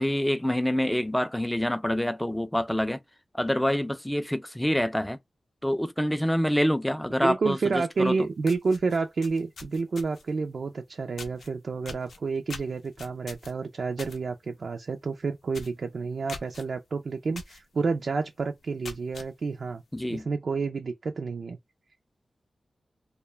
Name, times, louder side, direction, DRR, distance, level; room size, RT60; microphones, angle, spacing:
voice 1, 0.0-3.0 3.3-5.2 5.6-8.2 19.9-20.3, equal, 10° left, 0.3 m, -26 dB
voice 2, 7.2-19.8 20.1-21.6, right 4 dB, 70° right, 0.4 m, -29 dB
sound 1, 8.0-8.1 8.4-10.3 11.2-11.5 11.8-14.2 14.5-14.8 15.1-15.2 15.5-15.8 16.3-16.6 17.3-17.6 18.0-18.1 18.6-19.3, left 3 dB, 85° left, 0.5 m, -42 dB
2.2 x 2.1 x 3.2 m
cardioid pair, 70°, 0 cm